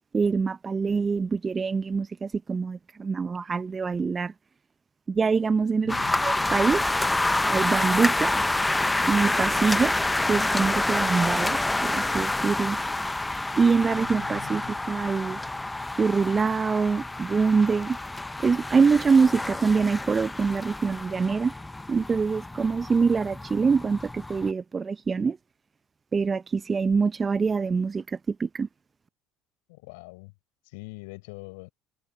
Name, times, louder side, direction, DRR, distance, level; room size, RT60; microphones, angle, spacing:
voice 1, 0.1-4.3 5.1-6.8 7.5-8.3 9.1-10.0 10.2-12.8 13.6-15.4 16.0-18.0 18.4-21.5 21.9-25.4 26.1-28.7, right 5 dB, 30° right, 0.7 m, -24 dB
voice 2, 5.8-6.4 13.9-14.7 29.7-30.3 30.6-31.7, left 27 dB, 75° left, 6.8 m, -44 dB
sound 1, 5.9-24.5, left 2 dB, 10° left, 0.9 m, -28 dB
hypercardioid pair, 70°, 0 cm